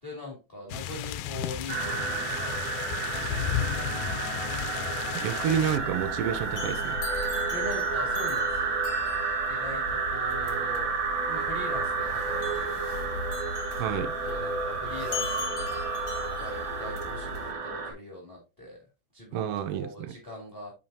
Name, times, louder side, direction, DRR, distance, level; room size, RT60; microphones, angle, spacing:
voice 1, 0.0-4.0 7.5-8.8 9.2-10.9 11.3-13.3 13.7-13.8 14.2-15.9 16.4-18.8 19.1-20.7, left 1 dB, 20° left, 2.2 m, -42 dB
sound 1, 0.7-5.8, left 11 dB, 90° left, 2.2 m, -34 dB
sound 2, 1.7-17.9, right 4 dB, 45° right, 1.8 m, -31 dB
voice 2, 5.1-7.2 13.8-14.2 19.3-20.1, right 9 dB, 80° right, 1.4 m, -30 dB
sound 3, 5.4-17.5, left 4 dB, 60° left, 2.1 m, -39 dB
9.4 x 5.6 x 2.7 m
omnidirectional pair, 3.6 m